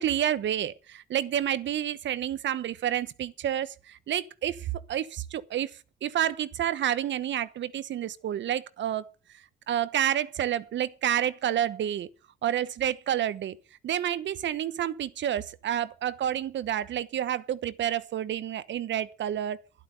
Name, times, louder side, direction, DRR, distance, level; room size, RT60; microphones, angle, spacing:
voice 1, 0.0-9.1 9.7-12.1 12.4-13.6 13.8-19.6, right 11 dB, 65° right, 1.1 m, -29 dB
12.0 x 11.5 x 6.8 m
cardioid pair, 90°, 20 cm